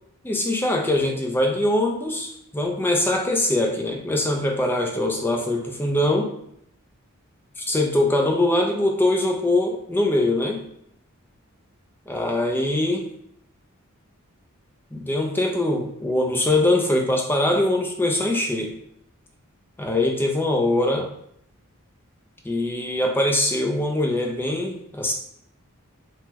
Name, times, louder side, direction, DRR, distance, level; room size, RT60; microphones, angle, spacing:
voice 1, 0.2-6.3 7.6-10.6 12.1-13.1 14.9-18.7 19.8-21.1 22.4-25.1, left 1 dB, 10° left, 2 dB, 0.3 m, -22 dB
3.4 x 2.1 x 2.9 m, 0.72 s
head